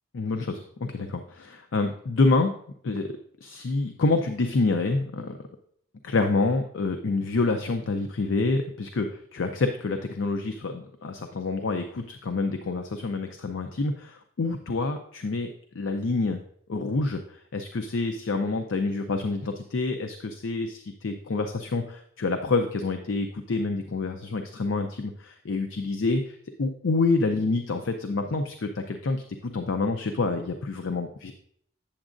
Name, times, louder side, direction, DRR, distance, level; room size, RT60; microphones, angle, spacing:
voice 1, 0.1-2.5 2.8-5.4 6.0-16.4 16.7-31.3, left 3 dB, 65° left, 6 dB, 0.5 m, -27 dB
8.6 x 7.1 x 2.5 m, 0.65 s
head